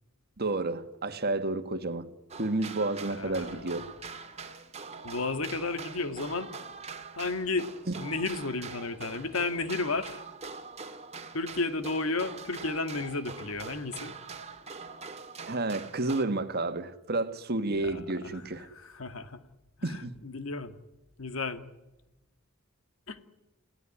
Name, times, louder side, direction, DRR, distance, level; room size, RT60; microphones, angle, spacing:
voice 1, 0.4-2.1 2.4-3.9 7.9-8.0 15.5-18.7 19.8-20.2, right 2 dB, 50° right, 1.7 m, -31 dB
sound 1, 2.3-16.3, right 4 dB, 30° right, 2.2 m, -43 dB
voice 2, 3.1-3.8 5.0-6.5 7.2-7.7 8.0-10.2 11.3-14.1 17.7-19.5 19.8-20.8 21.2-21.6 23.1-23.2, left 3 dB, 85° left, 1.9 m, -33 dB
29.5 x 17.0 x 9.9 m
head